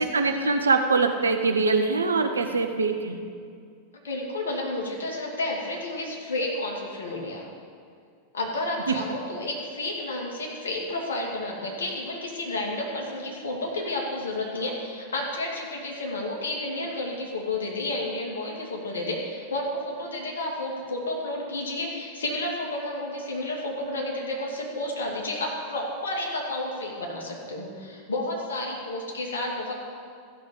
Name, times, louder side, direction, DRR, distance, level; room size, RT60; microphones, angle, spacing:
voice 1, 0.0-3.2 8.9-9.0, right 4 dB, 75° right, 6 dB, 0.9 m, -23 dB
voice 2, 4.0-7.4 8.3-29.7, left 2 dB, 65° left, -1 dB, 2.5 m, -31 dB
14.0 x 6.3 x 7.1 m, 2.3 s
figure-of-eight pair, 90°, 0 cm